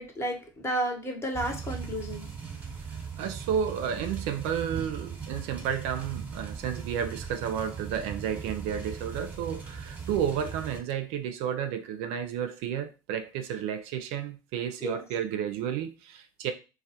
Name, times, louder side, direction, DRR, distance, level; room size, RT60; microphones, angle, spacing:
voice 1, 0.0-2.3 14.8-15.0, right 1 dB, 25° left, 3 dB, 0.8 m, -32 dB
sound 1, 1.3-10.8, right 6 dB, 15° right, 0.9 m, -39 dB
voice 2, 2.9-16.5, right 8 dB, 65° right, 8 dB, 0.4 m, -32 dB
2.2 x 2.1 x 2.7 m, 0.31 s
hypercardioid pair, 75°, 11 cm